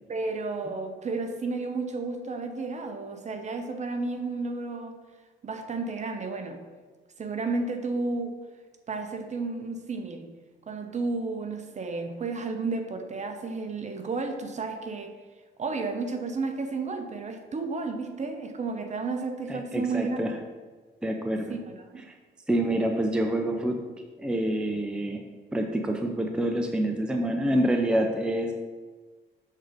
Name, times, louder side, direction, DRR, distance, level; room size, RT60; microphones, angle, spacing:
voice 1, 0.1-5.0 5.4-6.6 7.2-8.5 8.9-10.4 10.7-15.2 15.6-20.4 21.5-22.1, right 3 dB, 35° right, 5 dB, 0.8 m, -32 dB
voice 2, 19.5-20.3 21.0-21.6 22.1-22.2 22.5-23.9 24.2-28.5, right 1 dB, 5° right, 3 dB, 0.5 m, -27 dB
6.4 x 3.9 x 5.0 m, 1.4 s
cardioid pair, 90°, 20 cm